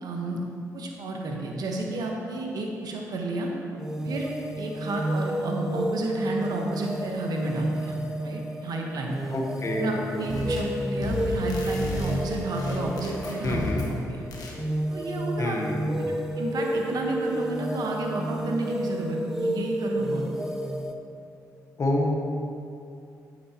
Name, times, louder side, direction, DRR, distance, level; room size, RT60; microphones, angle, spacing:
voice 1, 0.0-0.4 0.7-3.5 4.0-4.3 4.6-8.0 8.2-9.3 9.8-14.2 14.9-15.6 15.9-16.0 16.4-20.2, right 2 dB, 65° right, 0 dB, 1.3 m, -31 dB
sound 1, 3.8-20.9, right 1 dB, 5° right, 0.8 m, -31 dB
voice 2, 9.3-10.2 13.4-13.8 15.4-16.2 21.8-22.2, left 1 dB, 40° left, 0 dB, 1.2 m, -28 dB
sound 2, 10.3-10.7 11.0-14.0 14.3-14.6, left 2 dB, 60° left, 1.4 m, -34 dB
9.2 x 7.3 x 3.0 m, 2.5 s
supercardioid pair, 60°, 7 cm